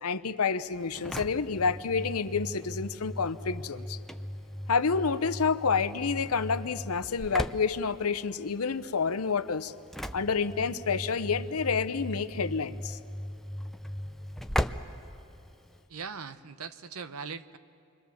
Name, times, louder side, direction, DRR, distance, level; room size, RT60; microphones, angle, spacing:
voice 1, 0.0-4.0 4.7-9.7 10.1-13.0, left 5 dB, 80° left, 13 dB, 0.8 m, -29 dB
Engine / Slam, 0.7-15.9, equal, ahead, 0.5 m, -38 dB
voice 2, 15.9-17.6, right 5 dB, 75° right, 12 dB, 0.8 m, -40 dB
29.0 x 23.0 x 7.1 m, 2.4 s
head